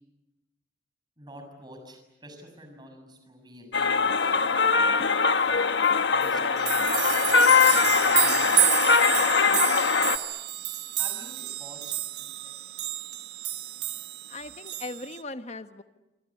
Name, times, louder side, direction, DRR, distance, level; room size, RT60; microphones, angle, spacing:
voice 1, 1.2-4.7 6.1-8.4 9.3-9.6 11.0-12.9, equal, 25° right, 5 dB, 6.7 m, -48 dB
sound 1, 3.7-10.2, left 5 dB, 85° left, 1.3 m, -22 dB
sound 2, 5.8-5.9 6.2-15.2, right 14 dB, 70° right, 1.3 m, -29 dB
voice 2, 14.3-15.8, left 2 dB, 40° left, 9 dB, 1.3 m, -38 dB
27.0 x 25.0 x 8.5 m, 1.0 s
head